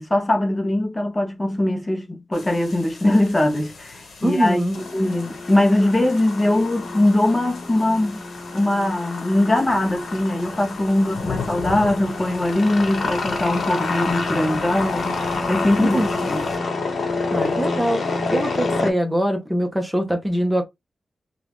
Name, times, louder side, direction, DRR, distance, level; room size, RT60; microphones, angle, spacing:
voice 1, 0.0-8.2 8.5-16.0 16.3-16.4, left 1 dB, 25° left, 0.8 m, -21 dB
sound 1, 2.3-16.6, left 5 dB, 85° left, 1.2 m, -38 dB
voice 2, 4.2-4.8 15.8-16.4 17.3-20.6, equal, 10° right, 0.9 m, -23 dB
sound 2, 4.7-18.9, left 3 dB, 60° left, 1.0 m, -28 dB
2.7 x 2.4 x 3.4 m
cardioid pair, 75°, 0 cm